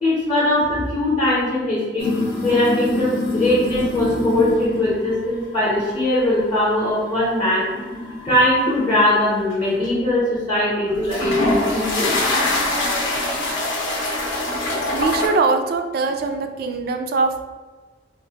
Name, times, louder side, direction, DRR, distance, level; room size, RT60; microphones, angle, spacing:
voice 1, 0.0-2.1 2.4-7.7 8.2-12.2, left 1 dB, 25° left, -8 dB, 0.7 m, -20 dB
sound 1, 2.0-5.1 5.6-5.9 7.4-9.1 9.5-9.9 10.9-15.3, left 1 dB, 80° left, 0.7 m, -24 dB
voice 2, 14.9-17.5, right 4 dB, 55° right, 6 dB, 0.3 m, -22 dB
3.8 x 2.0 x 2.7 m, 1.3 s
head